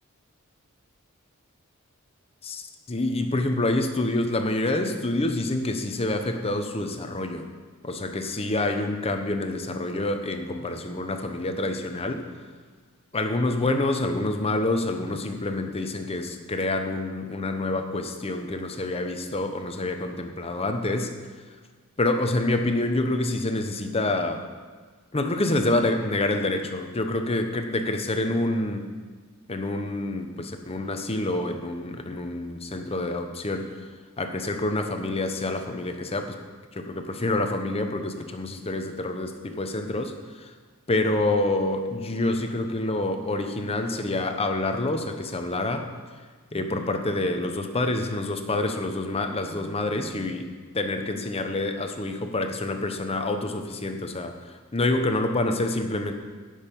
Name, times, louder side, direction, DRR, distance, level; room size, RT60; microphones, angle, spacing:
voice 1, 2.4-7.5 7.8-12.3 13.1-21.1 22.0-24.4 25.1-28.9 29.5-33.9 34.2-36.4 36.7-40.5 40.9-45.9 46.5-50.5 50.7-56.1, left 2 dB, 30° left, 6 dB, 0.9 m, -27 dB
15.5 x 6.6 x 5.3 m, 1.5 s
head